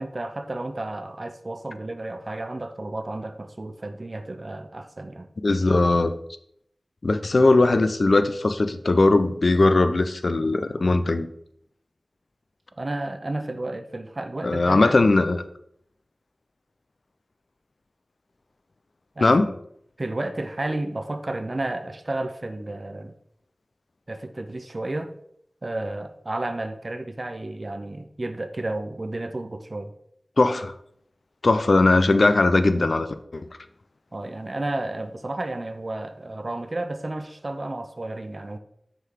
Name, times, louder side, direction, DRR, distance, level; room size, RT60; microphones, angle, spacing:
voice 1, 0.0-5.3 12.8-15.1 19.2-19.5 20.0-23.1 24.1-25.1 25.6-29.9 34.1-38.6, right 2 dB, 45° right, 8 dB, 0.5 m, -32 dB
voice 2, 5.4-6.1 7.0-11.3 14.4-15.4 19.2-19.5 30.4-30.7 31.4-33.1 33.3-33.5, left 2 dB, 65° left, 10 dB, 0.5 m, -19 dB
6.6 x 4.7 x 3.6 m, 0.71 s
wide cardioid pair, 75°, 0 cm